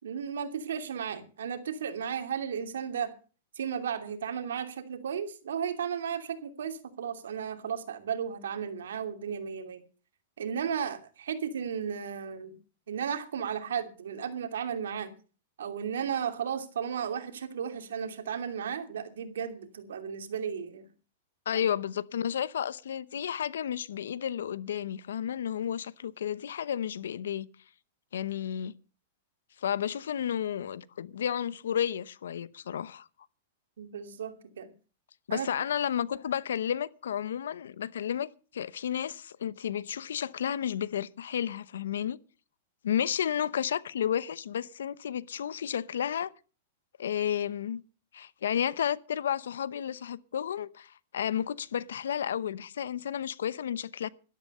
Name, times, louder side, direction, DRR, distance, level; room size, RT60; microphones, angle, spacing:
voice 1, 0.0-3.1 3.6-9.8 10.4-12.6 12.9-15.1 15.6-20.8 21.5-21.6 33.8-34.7 35.3-35.5, right 7 dB, 90° right, 2.7 m, -34 dB
voice 2, 21.5-27.5 28.1-28.7 29.6-33.1 35.3-42.2 42.8-46.3 47.0-47.8 48.1-54.1, left 9 dB, 90° left, 0.9 m, -32 dB
12.5 x 12.5 x 5.5 m
hypercardioid pair, 140°, 0 cm